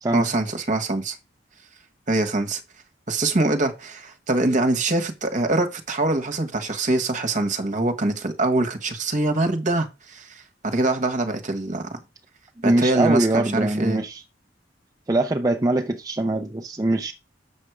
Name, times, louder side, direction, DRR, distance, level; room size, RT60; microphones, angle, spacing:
voice 1, 0.1-1.1 2.1-2.6 3.1-9.9 10.1-10.2 10.6-12.0 12.6-14.0, right 2 dB, 45° right, 1.5 m, -23 dB
voice 2, 12.6-14.2 15.1-17.1, right 2 dB, 20° right, 0.6 m, -23 dB
7.3 x 6.4 x 4.8 m
head